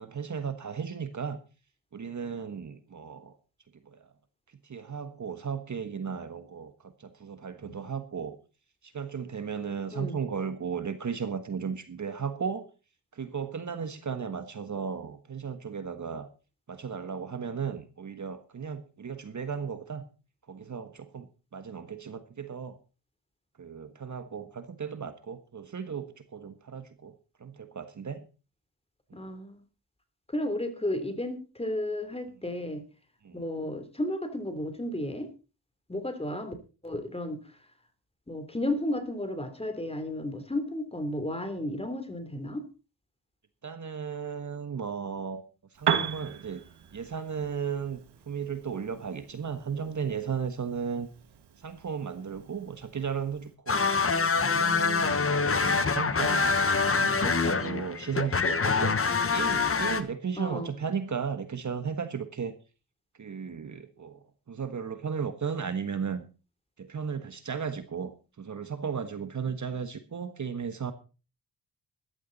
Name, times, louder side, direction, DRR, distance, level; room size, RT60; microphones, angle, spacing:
voice 1, 0.0-1.4 1.9-3.3 3.8-4.1 4.6-8.4 8.8-12.7 13.1-16.3 16.7-20.0 20.5-22.8 23.6-28.3 29.1-29.2 33.2-33.4 43.6-45.4 45.7-46.6 46.9-48.0 48.3-51.1 51.6-53.8 54.4-56.6 56.9-62.5 63.2-66.2 66.8-68.1 68.4-70.9, right 6 dB, 45° right, 10 dB, 1.5 m, -35 dB
voice 2, 29.1-29.6 30.3-32.8 33.3-35.3 35.9-36.5 36.8-37.5 38.3-42.6 60.4-60.8, left 1 dB, 15° left, 8 dB, 3.4 m, -33 dB
Piano, 45.7-53.5, right 8 dB, 80° right, 2.0 m, -37 dB
sound 1, 53.7-60.0, left 4 dB, 35° left, 1.3 m, -25 dB
14.5 x 12.0 x 4.1 m, 0.34 s
cardioid pair, 75°, 40 cm